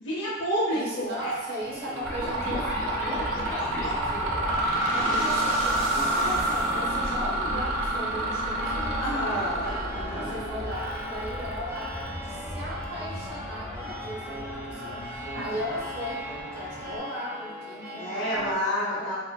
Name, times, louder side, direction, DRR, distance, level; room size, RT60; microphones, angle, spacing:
voice 1, 0.0-1.3 9.0-10.4 15.3-15.6 17.9-19.2, equal, 65° left, -6 dB, 0.7 m, -29 dB
voice 2, 0.7-4.4 4.9-9.5 10.1-19.1, equal, 50° right, -4 dB, 0.7 m, -37 dB
Mechanisms, 1.1-1.5 1.8-12.4, right 1 dB, 90° right, 0.6 m, -29 dB
sound 1, 1.6-18.5, equal, 15° right, 0.4 m, -40 dB
sound 2, 2.0-17.0, left 1 dB, 15° left, 0.8 m, -36 dB
3.5 x 2.4 x 2.2 m, 1.4 s
head